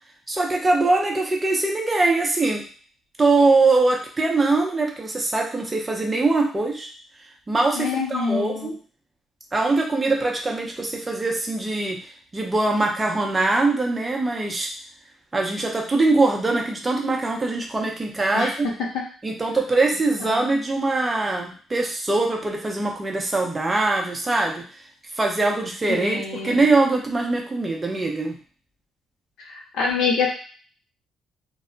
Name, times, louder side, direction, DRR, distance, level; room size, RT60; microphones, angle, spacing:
voice 1, 0.3-2.6 3.2-6.9 7.5-8.7 9.5-12.0 12.3-14.7 15.3-18.7 19.2-24.6 25.2-28.4, right 3 dB, 25° right, 0 dB, 0.7 m, -22 dB
voice 2, 7.8-8.7 18.3-19.0 20.3-20.5 25.9-26.6 29.5-30.3, left 5 dB, 85° left, -1 dB, 0.7 m, -26 dB
2.2 x 2.1 x 3.8 m, 0.41 s
cardioid pair, 90°, 0 cm